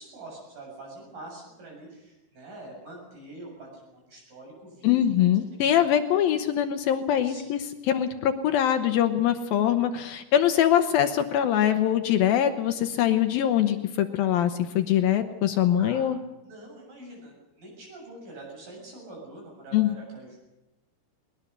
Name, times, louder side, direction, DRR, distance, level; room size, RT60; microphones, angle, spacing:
voice 1, 0.0-6.0 7.2-7.5 15.8-16.1 16.4-20.4, right 2 dB, 55° right, 0 dB, 9.1 m, -45 dB
voice 2, 4.8-16.2 19.7-20.0, left 10 dB, 75° left, 8 dB, 2.5 m, -23 dB
21.0 x 20.5 x 6.8 m, 0.98 s
omnidirectional pair, 4.7 m